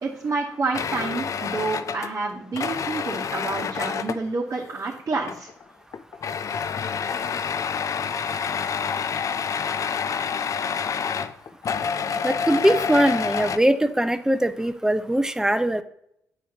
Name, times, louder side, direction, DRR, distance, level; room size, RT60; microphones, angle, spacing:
voice 1, 0.0-5.5, right 3 dB, 45° right, -3 dB, 1.1 m, -29 dB
sound 1, 0.7-4.3 5.2-5.6 5.9-13.6, left 6 dB, 50° left, 0.4 m, -28 dB
voice 2, 12.2-15.8, right 1 dB, 10° right, 12 dB, 0.6 m, -21 dB
8.6 x 5.0 x 2.8 m, 0.75 s
hypercardioid pair, 45°, 7 cm